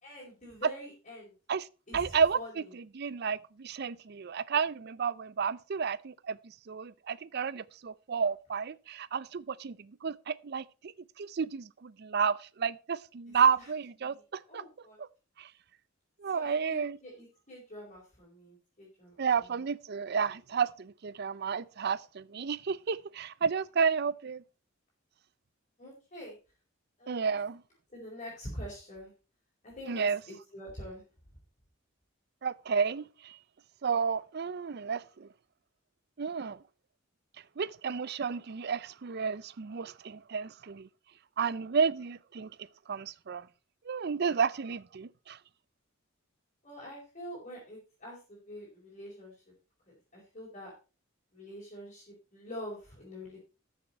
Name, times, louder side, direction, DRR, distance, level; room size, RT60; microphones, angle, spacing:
voice 1, 0.0-1.3 1.9-2.0 2.3-2.5 14.0-14.2 14.5-15.0 16.3-19.6 25.8-26.4 27.0-27.4 27.9-29.1 29.6-31.0 46.6-49.3 49.9-50.7 51.3-53.4, equal, 35° left, 4.8 m, -45 dB
voice 2, 1.9-6.4 6.7-10.9 11.2-14.6 15.0-15.1 15.4-15.5 16.2-17.0 19.2-24.4 27.1-27.6 29.9-30.2 32.4-33.4 33.8-35.3 36.2-36.6 37.6-40.9 41.4-42.5 42.9-43.4 43.9-45.4, right 6 dB, 55° right, 0.5 m, -31 dB
13.5 x 7.3 x 4.4 m
head